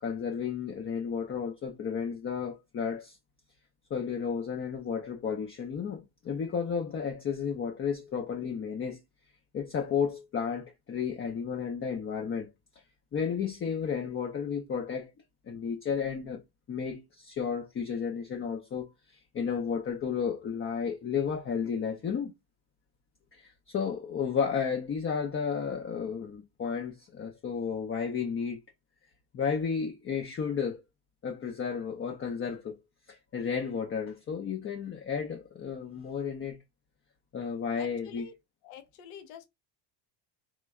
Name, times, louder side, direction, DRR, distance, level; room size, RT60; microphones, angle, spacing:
voice 1, 0.0-3.2 3.9-9.0 9.5-12.5 13.1-15.1 15.5-16.4 16.7-22.3 23.3-28.6 29.3-30.8 31.2-32.8 33.1-36.6 37.3-38.2, left 6 dB, 25° left, 0.5 m, -33 dB
voice 2, 37.8-38.3 38.6-39.5, left 7 dB, 80° left, 0.9 m, -47 dB
3.1 x 2.2 x 3.4 m
cardioid pair, 120°, 49 cm